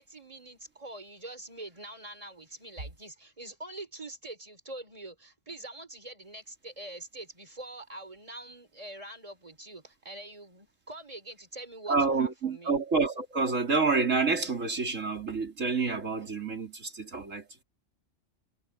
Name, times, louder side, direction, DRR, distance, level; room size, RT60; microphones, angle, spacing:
voice 1, 0.0-12.8, right 2 dB, 25° right, 4.2 m, -44 dB
voice 2, 11.9-17.6, right 4 dB, 80° right, 3.6 m, -28 dB
omnidirectional pair, 1.3 m